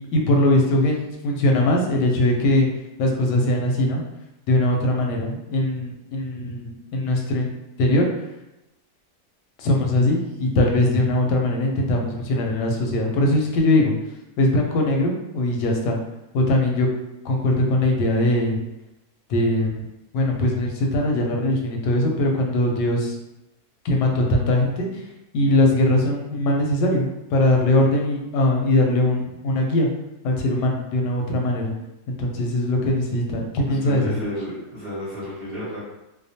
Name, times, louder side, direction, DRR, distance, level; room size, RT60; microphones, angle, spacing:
voice 1, 0.1-2.7 3.0-4.0 4.5-7.5 7.8-8.1 9.6-13.9 14.4-16.0 16.3-16.9 17.2-18.6 19.3-19.9 20.1-23.2 23.8-24.9 25.3-29.9 30.2-31.7 32.1-34.2, left 1 dB, 85° left, 1 dB, 1.2 m, -21 dB
voice 2, 33.7-35.8, left 1 dB, 45° right, -9 dB, 0.8 m, -32 dB
2.8 x 2.0 x 2.6 m, 0.93 s
omnidirectional pair, 1.8 m